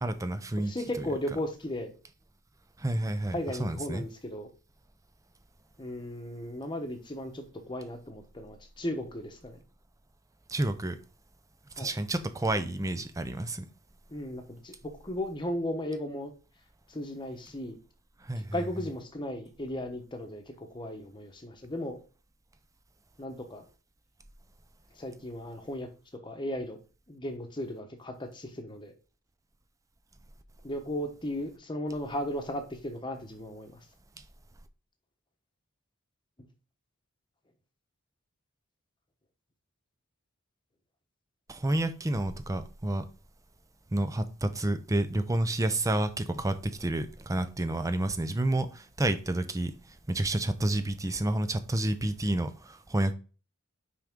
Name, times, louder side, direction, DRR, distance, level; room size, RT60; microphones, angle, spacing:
voice 1, 0.0-1.1 2.8-4.0 10.5-11.0 11.8-13.7 18.2-18.6 41.5-43.1 43.9-53.1, right 1 dB, 15° right, 0.5 m, -30 dB
voice 2, 0.7-1.9 3.3-4.5 5.8-9.6 11.8-11.9 14.1-16.3 16.9-17.8 18.5-22.0 23.2-23.6 25.0-25.9 26.2-26.8 27.1-28.9 30.6-33.7, left 1 dB, 20° left, 1.0 m, -36 dB
5.9 x 5.0 x 3.7 m
head